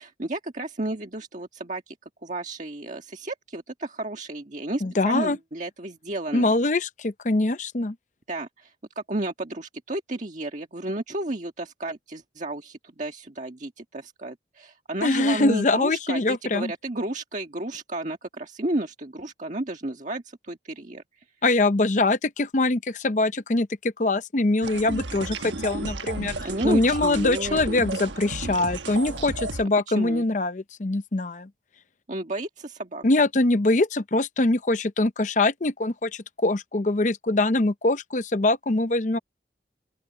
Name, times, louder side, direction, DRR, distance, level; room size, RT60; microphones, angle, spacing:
voice 1, 0.0-1.9 2.2-6.5 8.3-21.2 26.4-27.7 29.9-30.2 32.1-33.0, right 2 dB, 45° right, 1.6 m, -32 dB
voice 2, 4.8-5.4 6.3-7.9 15.0-16.7 21.4-26.3 26.6-31.5 33.0-39.2, left 2 dB, 45° left, 0.7 m, -23 dB
sound 1, 24.6-29.6, right 3 dB, 90° right, 1.3 m, -33 dB
open air
head